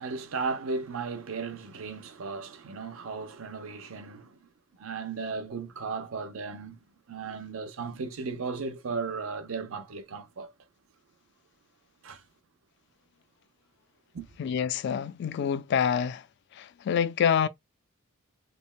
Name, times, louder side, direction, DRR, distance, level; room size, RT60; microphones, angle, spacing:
voice 1, 0.0-4.5 4.8-6.8 7.1-10.5 12.0-12.2 14.1-14.3, right 4 dB, 75° right, 0.6 m, -35 dB
voice 2, 14.4-16.3 16.5-17.5, left 7 dB, 55° left, 0.3 m, -27 dB
3.4 x 2.1 x 2.3 m
head